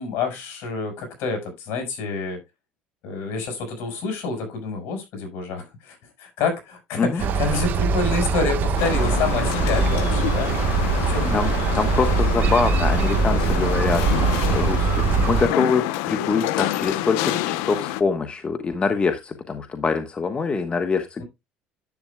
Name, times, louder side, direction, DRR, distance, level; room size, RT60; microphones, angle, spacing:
voice 1, 0.0-2.4 3.0-10.6 11.0-11.4, left 4 dB, 70° left, 5 dB, 6.0 m, -28 dB
sound 1, 7.2-15.5, right 4 dB, 55° right, 1.3 m, -22 dB
sound 2, 8.8-18.0, left 14 dB, 85° left, 0.8 m, -28 dB
voice 2, 11.3-14.0 14.5-21.2, left 5 dB, 30° left, 8 dB, 1.2 m, -24 dB
10.5 x 8.8 x 2.3 m, 0.22 s
cardioid pair, 110°, 4 cm